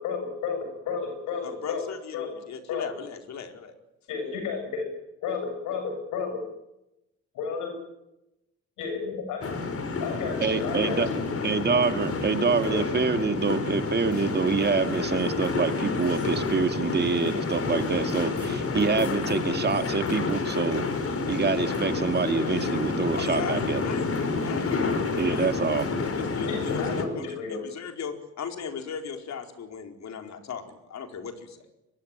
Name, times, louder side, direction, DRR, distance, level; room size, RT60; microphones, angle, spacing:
voice 1, 0.0-0.6 0.8-1.8 2.1-2.3 2.7-2.8 4.1-4.9 5.2-6.4 7.3-7.7 8.8-9.4 10.0-11.0 12.6-12.8 26.5-27.6, left 5 dB, 90° left, 5 dB, 7.9 m, -32 dB
voice 2, 1.4-3.7 23.1-25.4 26.1-26.7 27.2-31.7, left 7 dB, 65° left, 5 dB, 4.7 m, -38 dB
sound 1, 9.4-27.0, left 4 dB, 50° left, 5.0 m, -29 dB
voice 3, 10.4-11.1 11.4-20.8 21.3-23.8 25.2-25.9, right 5 dB, 35° right, 8 dB, 2.1 m, -26 dB
24.5 x 22.5 x 9.2 m, 0.90 s
cardioid pair, 90°, 30 cm